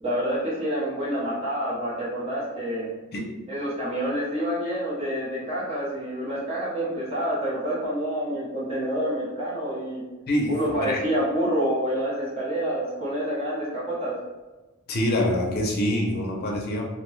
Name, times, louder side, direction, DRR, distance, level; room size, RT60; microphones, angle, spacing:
voice 1, 0.0-2.9 3.5-10.0 10.5-14.1, equal, 25° right, -9 dB, 0.8 m, -27 dB
voice 2, 10.3-11.0 14.9-16.8, left 1 dB, 45° left, 0 dB, 0.5 m, -25 dB
2.7 x 2.1 x 3.1 m, 1.2 s
head